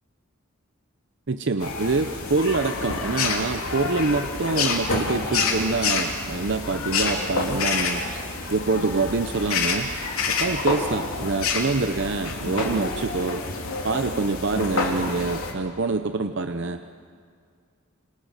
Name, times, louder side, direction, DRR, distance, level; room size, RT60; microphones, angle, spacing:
voice 1, 1.3-8.0 8.5-9.9 10.3-13.4 13.8-16.8, right 3 dB, 55° right, 8 dB, 0.7 m, -25 dB
sound 1, 1.6-15.5, left 4 dB, 80° left, 3.1 m, -28 dB
27.0 x 25.0 x 6.6 m, 2.1 s
head